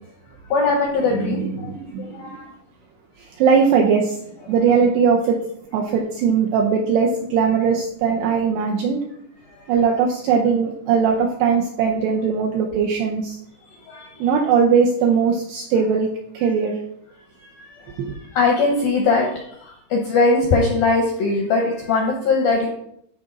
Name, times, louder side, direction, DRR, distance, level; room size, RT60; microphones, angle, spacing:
voice 1, 0.5-1.7 2.0-2.5 9.5-9.6 13.9-14.3 17.6-22.7, left 3 dB, 80° left, 1 dB, 2.1 m, -21 dB
voice 2, 1.1-2.4 3.2-5.4 5.7-9.0 9.7-13.4 14.2-16.8 18.0-18.1, right 6 dB, 80° right, 1 dB, 2.4 m, -20 dB
13.0 x 5.0 x 4.0 m, 0.74 s
omnidirectional pair, 5.7 m